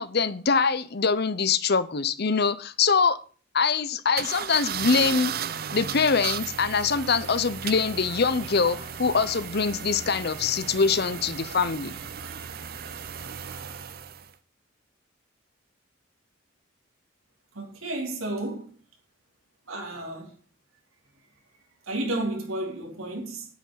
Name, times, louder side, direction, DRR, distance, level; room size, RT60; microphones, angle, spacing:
voice 1, 0.0-3.2 3.5-5.3 5.7-12.0, left 5 dB, 50° left, 0.8 m, -24 dB
sound 1, 4.2-14.3, right 8 dB, 45° right, 0.6 m, -35 dB
sound 2, 6.6-13.9, right 2 dB, 65° right, 5.4 m, -47 dB
voice 2, 17.5-18.8 19.7-20.3 21.8-23.5, right 1 dB, 90° right, 4.1 m, -32 dB
10.0 x 9.2 x 5.7 m
head